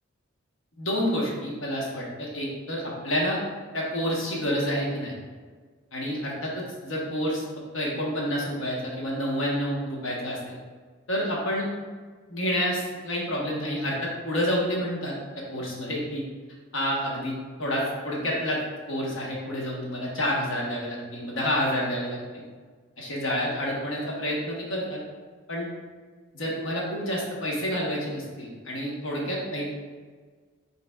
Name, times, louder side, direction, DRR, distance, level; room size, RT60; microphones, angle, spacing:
voice 1, 0.8-3.4 3.7-5.1 5.9-7.4 7.7-10.6 11.1-11.7 12.3-15.1 15.5-16.2 16.7-18.6 18.9-22.4 23.0-25.0 25.5-25.7 26.3-29.7, equal, 75° left, -3 dB, 1.1 m, -29 dB
5.6 x 4.1 x 2.3 m, 1.5 s
head